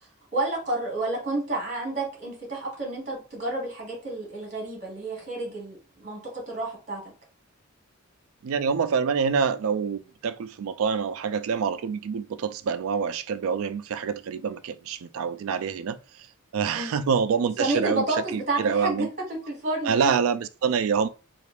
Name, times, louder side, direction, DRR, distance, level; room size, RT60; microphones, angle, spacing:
voice 1, 0.3-7.0 16.7-17.0 17.6-20.1, right 2 dB, 35° right, 1.5 m, -30 dB
voice 2, 8.4-16.0 16.5-18.0 18.3-19.1 19.9-21.1, right 6 dB, 75° right, 0.3 m, -26 dB
3.3 x 2.4 x 3.3 m
head